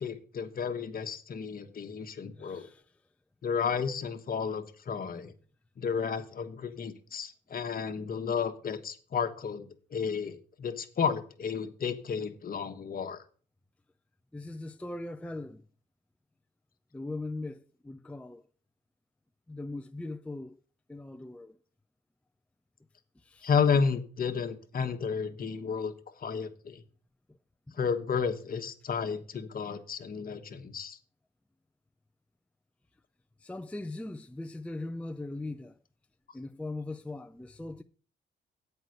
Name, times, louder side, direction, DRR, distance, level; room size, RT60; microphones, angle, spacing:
voice 1, 0.0-2.7 3.4-5.3 5.8-13.2 23.4-25.9 26.2-26.8 27.8-31.0, left 6 dB, 45° left, 1.2 m, -32 dB
voice 2, 2.2-2.8 14.3-15.6 16.9-18.4 19.5-20.6 20.9-21.6 23.2-23.5 27.7-27.8 33.4-35.7 36.3-37.8, left 2 dB, 5° left, 0.5 m, -40 dB
8.1 x 5.5 x 7.8 m
cardioid pair, 90°, 20 cm